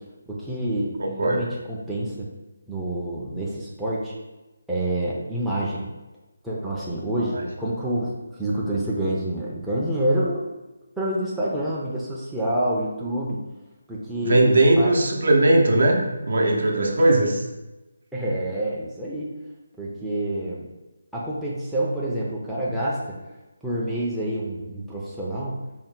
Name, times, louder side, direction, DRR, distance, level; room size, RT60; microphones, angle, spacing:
voice 1, 0.3-1.0 1.2-2.3 2.7-4.1 4.7-5.9 6.4-10.4 11.0-13.4 13.9-14.9 17.0-17.1 18.1-19.3 19.8-20.7 21.1-23.2 23.6-25.6, right 1 dB, ahead, -8 dB, 0.4 m, -27 dB
voice 2, 1.0-1.4 7.3-7.4 14.2-17.4, right 1 dB, 65° right, 1 dB, 0.7 m, -19 dB
4.3 x 2.1 x 3.6 m, 1.1 s
hypercardioid pair, 170°, 0 cm